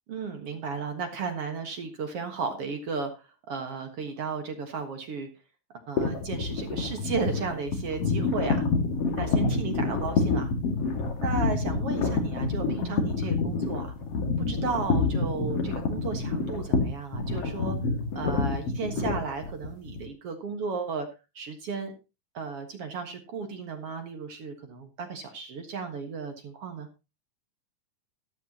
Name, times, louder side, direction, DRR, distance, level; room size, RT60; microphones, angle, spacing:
voice 1, 0.1-5.3 5.9-8.6 9.1-10.5 11.2-13.9 14.4-17.8 18.2-21.1 21.3-21.9 22.3-26.9, right 5 dB, 50° right, 6 dB, 2.2 m, -34 dB
sound 1, 6.0-20.0, left 4 dB, 50° left, 2.9 m, -27 dB
13.5 x 11.5 x 2.9 m, 0.28 s
omnidirectional pair, 3.9 m